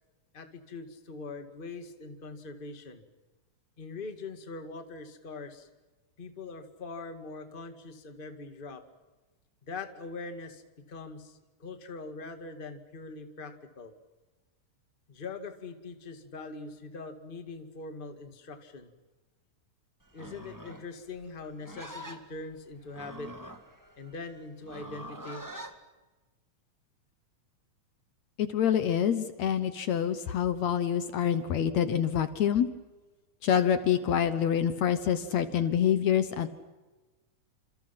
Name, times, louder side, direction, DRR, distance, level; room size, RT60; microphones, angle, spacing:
voice 1, 0.3-3.0 3.8-5.7 6.2-8.8 9.6-13.9 15.1-18.9 20.1-23.3 24.0-25.5, left 3 dB, 20° left, 6 dB, 1.8 m, -42 dB
Livestock farm animals working animals, 20.1-25.8, equal, 10° right, 1.2 m, -45 dB
voice 2, 28.4-32.7 33.4-36.5, left 9 dB, 65° left, 11 dB, 2.2 m, -26 dB
30.0 x 27.0 x 6.0 m, 1.2 s
omnidirectional pair, 3.6 m